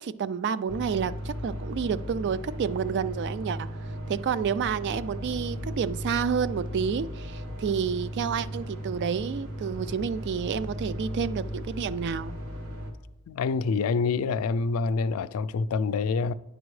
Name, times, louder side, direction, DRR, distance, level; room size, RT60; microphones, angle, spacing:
voice 1, 0.0-3.7 4.1-12.3, right 6 dB, 50° right, 0.3 m, -29 dB
sound 1, 0.7-12.9, equal, 65° right, 1.1 m, -36 dB
voice 2, 13.3-16.3, left 4 dB, 70° left, 0.3 m, -26 dB
9.9 x 6.0 x 3.2 m
head